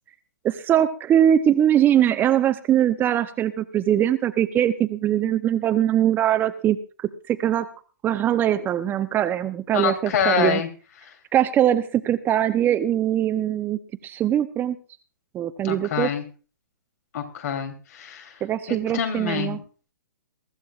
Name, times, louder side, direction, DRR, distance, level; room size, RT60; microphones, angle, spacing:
voice 1, 0.4-6.8 7.3-7.7 8.0-10.6 11.3-14.8 15.3-16.1 18.4-19.6, right 10 dB, 20° right, 10 dB, 0.7 m, -21 dB
voice 2, 9.7-10.7 15.6-16.2 17.1-18.3 18.7-19.6, left 7 dB, 55° left, 6 dB, 3.3 m, -26 dB
23.0 x 14.0 x 2.4 m, 0.38 s
hypercardioid pair, 130°, 11 cm